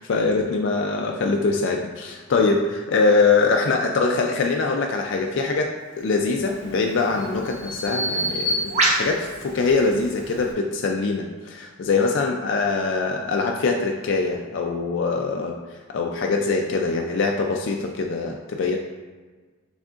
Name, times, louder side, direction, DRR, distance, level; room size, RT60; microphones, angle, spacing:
voice 1, 0.0-18.8, left 4 dB, 65° left, 1 dB, 0.4 m, -23 dB
Bird vocalization bird call bird song, 6.3-10.5, right 1 dB, 35° right, 0.9 m, -27 dB
6.2 x 3.5 x 2.4 m, 1.4 s
head